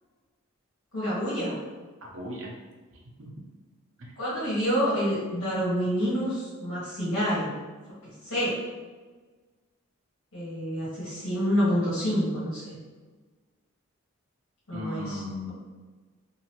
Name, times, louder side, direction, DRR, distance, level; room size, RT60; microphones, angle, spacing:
voice 1, 0.9-1.6 4.2-7.5 8.0-8.6 10.3-12.8 14.7-15.2, equal, 75° left, -11 dB, 1.4 m, -28 dB
voice 2, 2.0-2.5 3.2-3.3 4.0-4.1 14.7-15.5, left 1 dB, 65° right, -1 dB, 0.7 m, -36 dB
2.9 x 2.6 x 2.9 m, 1.4 s
head